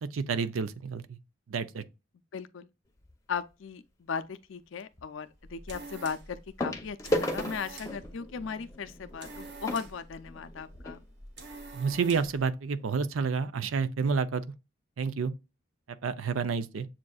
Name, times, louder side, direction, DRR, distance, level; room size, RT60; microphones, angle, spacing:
voice 1, 0.0-1.2 1.5-1.8 11.7-14.4 15.0-15.3 16.0-16.9, right 5 dB, 85° right, 0.5 m, -29 dB
voice 2, 2.3-2.7 3.3-11.0, left 6 dB, 75° left, 0.5 m, -37 dB
sound 1, 3.0-3.3 5.0-5.1 6.6-11.0 11.8-11.9 12.1-12.3 12.8-12.9, left 1 dB, 15° left, 0.6 m, -35 dB
sound 2, 5.3-12.5, right 2 dB, 55° right, 1.0 m, -47 dB
7.4 x 2.6 x 2.3 m
head